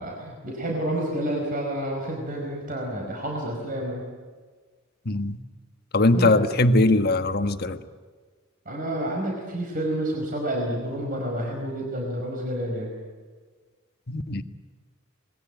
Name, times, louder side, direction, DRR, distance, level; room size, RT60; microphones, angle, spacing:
voice 1, 0.0-4.0 6.1-6.3 8.6-12.9, right 1 dB, 40° right, 0 dB, 5.0 m, -29 dB
voice 2, 5.0-5.4 5.9-7.8 14.1-14.4, left 2 dB, 50° left, 9 dB, 1.3 m, -21 dB
26.5 x 21.0 x 9.3 m, 1.4 s
head